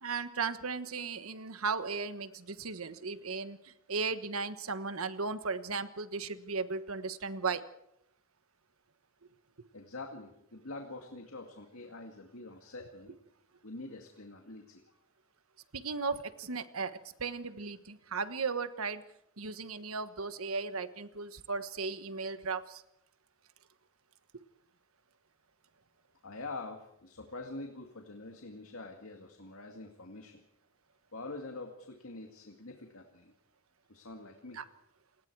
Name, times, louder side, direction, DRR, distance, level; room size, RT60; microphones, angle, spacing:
voice 1, 0.0-7.6 15.7-19.0 19.4-22.8 34.5-34.6, right 4 dB, 90° right, 11 dB, 1.3 m, -36 dB
voice 2, 9.7-13.1 13.6-15.0 26.2-30.4 31.1-33.3 33.9-34.6, left 2 dB, 80° left, 3 dB, 2.2 m, -45 dB
28.5 x 20.0 x 4.8 m, 0.77 s
head